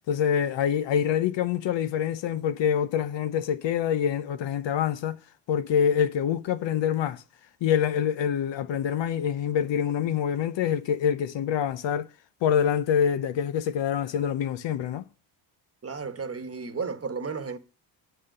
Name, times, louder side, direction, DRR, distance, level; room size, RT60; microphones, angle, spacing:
voice 1, 0.1-5.2 5.5-7.2 7.6-12.1 12.4-15.0, left 8 dB, 70° left, 0.8 m, -26 dB
voice 2, 15.8-17.6, right 5 dB, 30° right, 1.2 m, -33 dB
9.2 x 5.7 x 6.5 m
cardioid pair, 75°, 45 cm